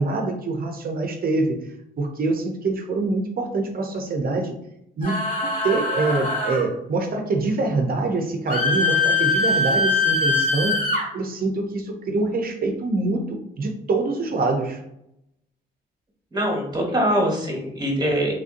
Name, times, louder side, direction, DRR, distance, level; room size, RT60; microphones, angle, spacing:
voice 1, 0.0-1.6 2.0-4.5 5.0-10.8 11.1-14.8, right 3 dB, 50° right, 3 dB, 0.6 m, -25 dB
sound 1, 5.0-6.7 8.5-11.0, left 3 dB, 40° left, 1.4 m, -22 dB
voice 2, 16.3-18.3, equal, 20° right, -1 dB, 1.1 m, -23 dB
3.2 x 2.5 x 2.5 m, 0.79 s
cardioid pair, 90°, 20 cm